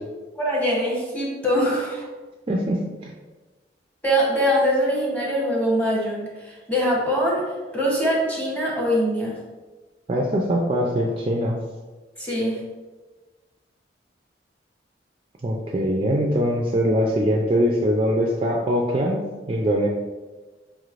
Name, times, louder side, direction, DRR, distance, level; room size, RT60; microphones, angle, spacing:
voice 1, 0.4-2.0 4.0-7.4 7.7-9.4 12.2-12.6, equal, 10° left, -4 dB, 0.9 m, -23 dB
voice 2, 2.5-3.1 10.1-11.6 15.4-19.9, equal, 30° right, 0 dB, 0.3 m, -22 dB
4.7 x 3.1 x 2.5 m, 1.3 s
head